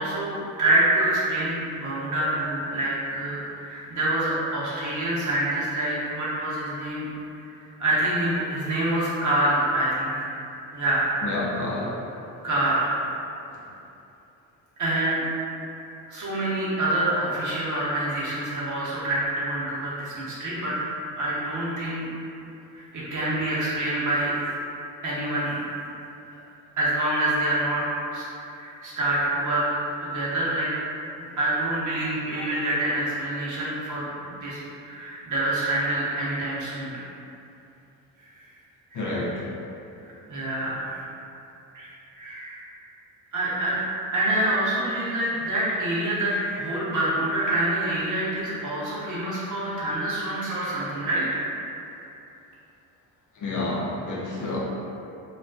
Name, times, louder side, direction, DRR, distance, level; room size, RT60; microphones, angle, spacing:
voice 1, 0.0-7.1 7.5-10.3 10.7-11.1 12.4-13.0 14.8-15.2 16.1-20.8 21.1-22.1 22.7-24.3 25.0-25.6 26.8-27.8 28.1-29.6 30.0-30.7 31.2-36.9 38.2-38.3 38.9-39.2 40.3-41.0 41.7-41.9 42.2-42.6 43.3-43.8 44.1-51.4 51.7-51.9, right 1 dB, 45° right, -8 dB, 1.0 m, -26 dB
voice 2, 11.2-12.0 38.9-39.5 53.4-54.6, left 2 dB, 50° left, -4 dB, 0.6 m, -29 dB
2.3 x 2.3 x 2.3 m, 2.7 s
supercardioid pair, 60°, 41 cm